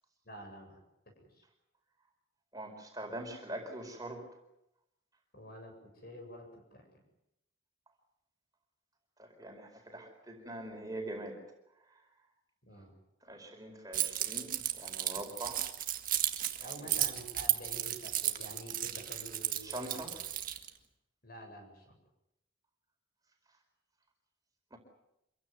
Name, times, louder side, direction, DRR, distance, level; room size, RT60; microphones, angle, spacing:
voice 1, 0.2-0.8 1.1-1.4 5.3-7.0 12.6-12.9 16.6-20.2 21.2-22.0, equal, 50° left, 3 dB, 7.9 m, -49 dB
voice 2, 2.5-4.2 9.2-11.4 13.2-15.7 16.8-16.9 19.6-20.1 24.7-24.8, right 1 dB, 20° right, 3 dB, 4.6 m, -43 dB
Keys jangling, 13.9-20.7, right 12 dB, 45° right, 1.8 m, -34 dB
26.5 x 16.0 x 9.6 m, 0.83 s
head